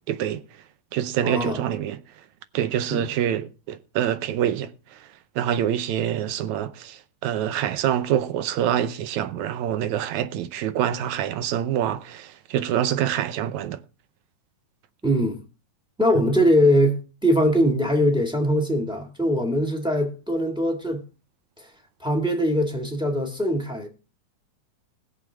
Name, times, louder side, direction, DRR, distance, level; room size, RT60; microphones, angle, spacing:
voice 1, 0.1-0.4 0.9-2.0 2.5-5.1 5.4-13.8, right 10 dB, 80° right, 2.1 m, -26 dB
voice 2, 1.2-1.6 2.9-3.1 15.0-15.4 16.0-21.0 21.6-21.7 22.0-23.9, equal, ahead, 1.1 m, -22 dB
20.5 x 7.1 x 3.4 m
omnidirectional pair, 3.4 m